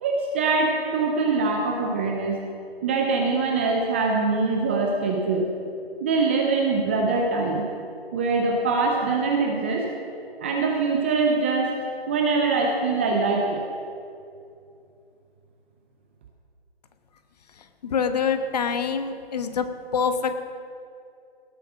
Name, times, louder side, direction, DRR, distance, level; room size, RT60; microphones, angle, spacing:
voice 1, 0.0-2.4 2.8-5.5 6.0-7.6 8.1-9.8 10.4-11.8 12.1-13.6, right 3 dB, 10° right, 0 dB, 0.5 m, -23 dB
voice 2, 17.8-19.7 19.9-20.3, left 6 dB, 40° left, 8 dB, 1.0 m, -25 dB
18.0 x 8.1 x 6.2 m, 2.5 s
figure-of-eight pair, 145°, 31 cm